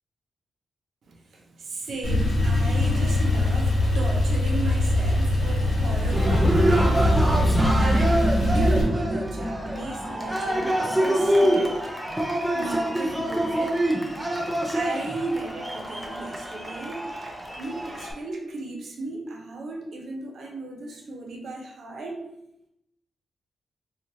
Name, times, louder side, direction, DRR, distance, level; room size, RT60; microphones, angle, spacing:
voice 1, 1.1-11.8 12.5-13.8 14.7-17.0 17.6-22.2, right 2 dB, 65° right, 1 dB, 0.5 m, -35 dB
Male speech man speaking / Car / Idling, 2.0-8.8, left 1 dB, 60° left, 0.9 m, -22 dB
Cheering, 6.1-18.1, right 1 dB, 5° right, 0.3 m, -25 dB
2.9 x 2.4 x 2.7 m, 0.82 s
wide cardioid pair, 175°, 0 cm